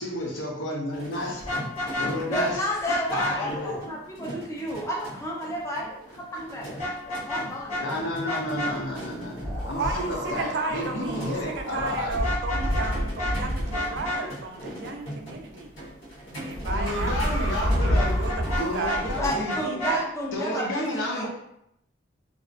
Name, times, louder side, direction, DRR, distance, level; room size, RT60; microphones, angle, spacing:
voice 1, 0.0-1.4 2.0-2.6 3.1-3.8 7.8-12.2 16.7-18.2 18.4-19.6 20.3-21.3, left 1 dB, 70° left, -2 dB, 0.6 m, -31 dB
sound 1, 0.9-19.6, equal, 85° left, 1.1 m, -41 dB
Vehicle horn car horn honking, 1.4-2.5 2.9-3.3 6.8-7.4 7.7-7.8 8.3-8.7 12.1-12.9 13.2-13.3 13.7-14.2 17.9-19.0 19.5-20.0, left 1 dB, 40° left, 0.8 m, -30 dB
voice 2, 2.3-8.0 19.2-21.3, equal, 15° left, -3 dB, 0.5 m, -31 dB
sound 2, 9.4-14.1 16.5-19.3, equal, 20° right, 0.7 m, -29 dB
voice 3, 9.8-15.7 16.4-20.1, right 4 dB, 60° right, 4 dB, 0.3 m, -34 dB
2.5 x 2.0 x 2.4 m, 0.76 s
head